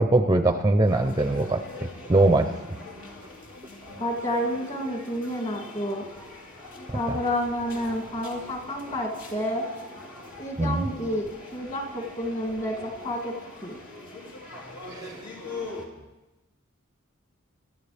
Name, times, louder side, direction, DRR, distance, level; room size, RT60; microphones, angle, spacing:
voice 1, 0.0-2.5 6.9-7.2 10.6-10.9 14.9-15.2, right 2 dB, 15° right, 7 dB, 0.6 m, -22 dB
sound 1, 0.8-15.9, left 2 dB, 70° left, 2.6 m, -42 dB
voice 2, 4.0-6.0 6.9-9.7 10.4-13.3 13.6-13.8, equal, 35° left, 0 dB, 2.5 m, -30 dB
26.5 x 12.5 x 3.4 m, 1.0 s
head